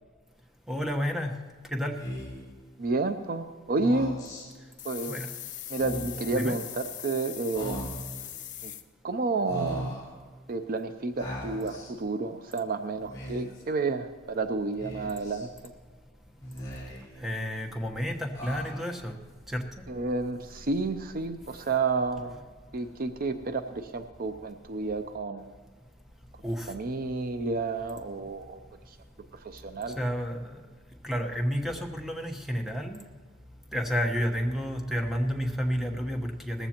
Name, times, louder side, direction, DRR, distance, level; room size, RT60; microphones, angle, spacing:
voice 1, 0.7-1.4 1.7-2.0 5.1-5.3 6.3-6.6 17.2-19.2 19.5-19.7 26.4-26.7 30.0-30.6 31.0-33.0 33.7-36.7, equal, ahead, 2 dB, 1.1 m, -30 dB
Speech, 2.0-2.5 3.7-4.5 5.7-6.3 7.5-8.2 9.5-10.1 11.2-11.9 13.0-13.6 14.8-15.5 16.4-17.2 18.3-19.0, equal, 20° left, 4.5 m, -38 dB
voice 2, 2.8-4.2 4.8-5.2 5.7-8.0 8.6-8.7 9.0-10.0 10.5-15.7 19.9-22.3 22.7-25.6 26.7-28.6 28.9-29.0 29.3-30.0, right 3 dB, 45° right, 8 dB, 0.5 m, -30 dB
sound 1, 4.8-8.8, left 11 dB, 40° left, 0.7 m, -40 dB
19.5 x 15.0 x 2.9 m, 1.5 s
head